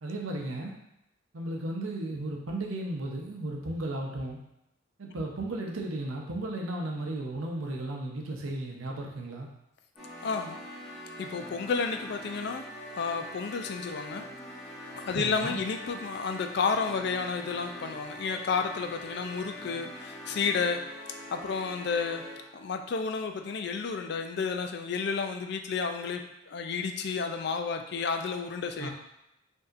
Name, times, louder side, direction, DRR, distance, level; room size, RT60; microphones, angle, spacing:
voice 1, 0.0-0.7 1.3-4.4 5.0-9.5 15.2-15.6 28.8-28.9, right 1 dB, 85° right, 0 dB, 0.8 m, -35 dB
sound 1, 10.0-22.6, equal, ahead, 1.5 m, -43 dB
voice 2, 10.2-10.6 11.2-12.6 13.0-14.3 14.9-20.8 21.3-22.2 22.5-28.9, left 5 dB, 55° left, 6 dB, 0.4 m, -31 dB
5.3 x 2.8 x 2.5 m, 0.85 s
head